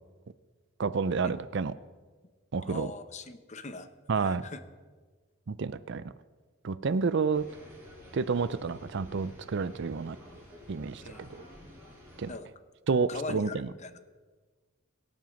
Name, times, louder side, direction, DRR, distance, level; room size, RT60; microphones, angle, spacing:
voice 1, 0.8-1.7 2.5-2.9 4.1-4.5 5.5-6.0 6.6-7.4 8.1-10.2 10.7-11.4 12.2-12.4 12.9-13.7, right 5 dB, 55° right, 14 dB, 0.5 m, -30 dB
voice 2, 2.7-3.9 4.1-4.6 11.0-11.2 12.3-12.5 13.1-14.0, left 3 dB, 35° left, 10 dB, 0.8 m, -41 dB
sound 1, 7.3-12.3, left 1 dB, 10° right, 5.7 m, -51 dB
23.0 x 7.8 x 5.2 m, 1.4 s
head